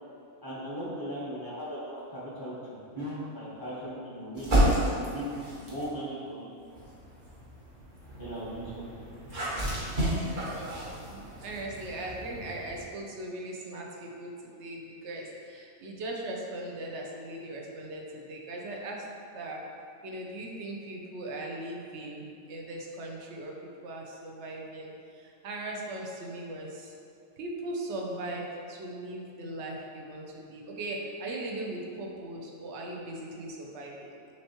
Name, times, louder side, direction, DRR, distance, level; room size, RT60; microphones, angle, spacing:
voice 1, 0.4-6.5 8.2-8.8, equal, 20° right, -9 dB, 0.8 m, -38 dB
sound 1, 4.3-5.9 6.6-12.8, right 1 dB, 40° right, 1.1 m, -31 dB
voice 2, 10.5-19.1 19.3-19.6 20.0-26.9 27.4-34.1, right 1 dB, 65° right, -1 dB, 0.8 m, -39 dB
6.2 x 3.0 x 2.8 m, 2.5 s
omnidirectional pair, 1.4 m